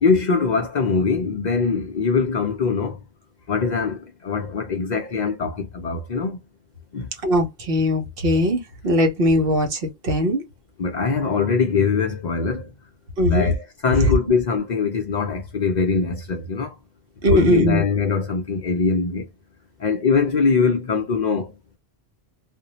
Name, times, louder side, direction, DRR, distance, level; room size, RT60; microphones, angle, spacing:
voice 1, 0.0-3.0 3.5-6.4 6.9-7.1 10.8-12.6 13.3-16.7 17.3-19.3 19.8-21.5, left 5 dB, 55° left, 0.6 m, -22 dB
voice 2, 7.2-10.4 13.2-13.5 17.2-17.8, left 1 dB, 65° right, 1.1 m, -20 dB
2.5 x 2.1 x 2.9 m
omnidirectional pair, 1.1 m